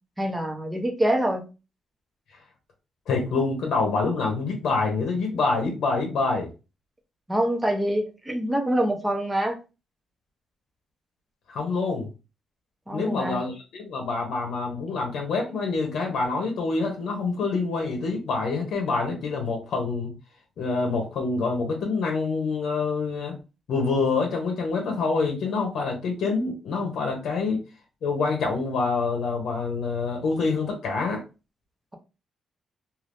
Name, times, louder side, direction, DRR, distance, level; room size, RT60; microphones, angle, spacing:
voice 1, 0.2-1.4 7.3-9.6 12.9-13.4, right 1 dB, 10° right, 4 dB, 0.7 m, -25 dB
voice 2, 3.1-6.5 11.5-12.1 12.9-20.1 20.6-23.4 23.7-27.6 28.0-31.2, left 4 dB, 70° left, 2 dB, 0.9 m, -26 dB
2.6 x 2.5 x 3.4 m, 0.29 s
cardioid pair, 135°, 0 cm